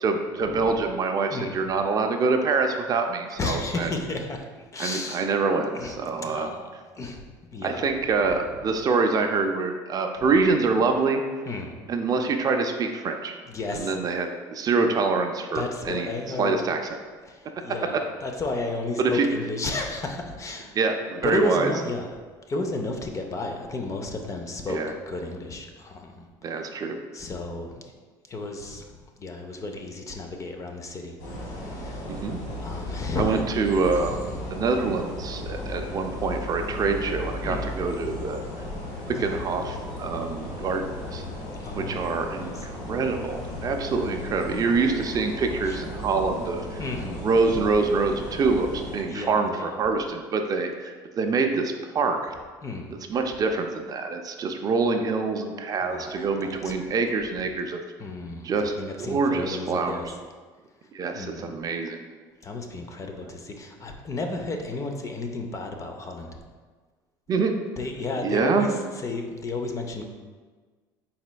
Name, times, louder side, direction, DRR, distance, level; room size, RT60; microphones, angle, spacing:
voice 1, 0.0-3.9 4.8-6.5 7.6-11.2 11.9-13.3 13.7-16.1 16.4-16.8 19.0-19.3 20.8-21.7 24.7-24.9 26.4-27.0 32.1-32.4 33.2-38.4 39.1-41.2 41.8-46.8 47.2-52.3 53.1-57.8 58.4-60.0 60.9-62.1 67.3-67.6 68.2-68.7, right 4 dB, 40° right, 5 dB, 0.4 m, -25 dB
voice 2, 3.4-5.3 5.7-7.9 11.5-11.8 13.5-14.0 15.5-16.5 17.2-20.7 21.2-22.1 22.5-26.7 27.1-27.8 28.3-32.1 32.6-33.4 34.0-34.7 37.4-37.7 39.2-39.4 41.6-42.1 42.4-42.7 44.5-44.8 45.6-45.8 46.8-47.2 49.1-49.7 52.6-53.0 55.8-56.7 58.0-60.1 61.1-61.5 62.4-66.4 67.8-70.0, left 2 dB, 30° left, 4 dB, 0.6 m, -33 dB
sound 1, 31.2-49.0, left 1 dB, 70° left, 1.3 m, -35 dB
4.1 x 4.1 x 2.2 m, 1.4 s
supercardioid pair, 85°, 10 cm